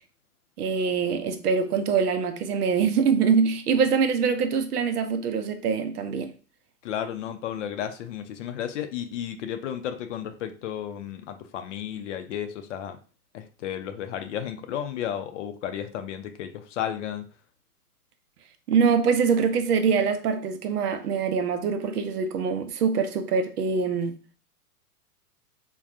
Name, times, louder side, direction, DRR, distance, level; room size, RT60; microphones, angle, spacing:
voice 1, 0.6-6.3 18.7-24.2, right 6 dB, 80° right, 0.6 m, -24 dB
voice 2, 6.8-13.0 13.3-17.3, left 9 dB, 55° left, 0.5 m, -33 dB
3.5 x 2.3 x 2.5 m
hypercardioid pair, 115°, 46 cm